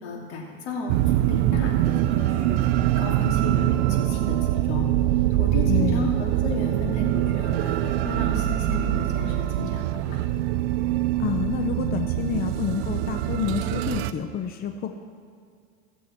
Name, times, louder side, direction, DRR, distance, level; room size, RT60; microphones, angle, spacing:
voice 1, 0.0-0.9 1.2-2.6 3.0-4.9 5.4-10.2, left 3 dB, 90° left, -1 dB, 2.7 m, -33 dB
sound 1, 0.9-14.1, right 14 dB, 70° right, 0.6 m, -24 dB
voice 2, 5.7-6.1 11.2-14.9, left 8 dB, 30° left, 6 dB, 0.7 m, -28 dB
17.5 x 7.5 x 4.4 m, 2.2 s
supercardioid pair, 130°, 33 cm